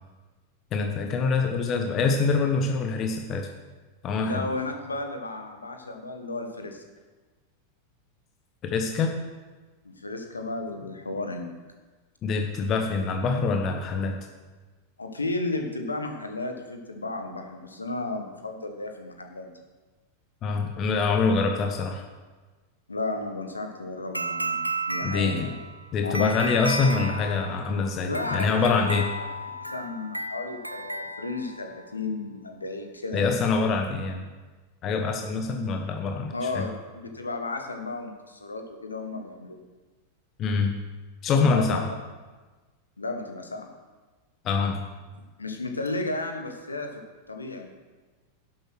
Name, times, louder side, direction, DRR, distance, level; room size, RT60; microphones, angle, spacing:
voice 1, 0.7-3.5 4.0-4.5 8.6-9.2 12.2-14.2 20.4-22.0 25.0-25.5 25.9-29.1 33.1-34.3 34.8-36.6 40.4-40.7 41.2-41.9 44.4-44.8, left 4 dB, 30° left, 4 dB, 1.1 m, -25 dB
voice 2, 4.2-6.8 9.8-11.5 15.0-19.5 22.9-24.6 24.9-25.5 26.0-26.5 28.1-29.0 29.6-33.2 36.3-39.6 41.4-41.8 43.0-43.7 45.4-47.0 47.3-47.7, left 2 dB, 80° left, 5 dB, 1.5 m, -33 dB
sound 1, 24.1-31.8, right 1 dB, 90° right, 0.7 m, -34 dB
11.5 x 7.9 x 6.4 m, 1.3 s
figure-of-eight pair, 90°, 0 cm